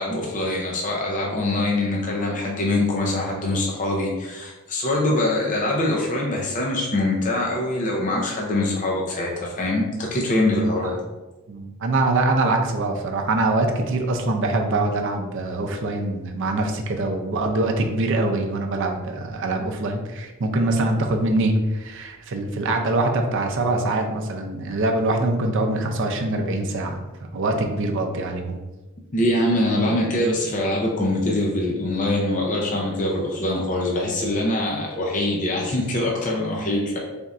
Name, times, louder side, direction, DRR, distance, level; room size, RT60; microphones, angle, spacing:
voice 1, 0.0-11.0 29.1-37.0, left 1 dB, 35° left, -1 dB, 0.5 m, -23 dB
voice 2, 11.5-28.6, right 2 dB, 60° right, 3 dB, 0.5 m, -24 dB
3.5 x 2.5 x 4.1 m, 1.1 s
head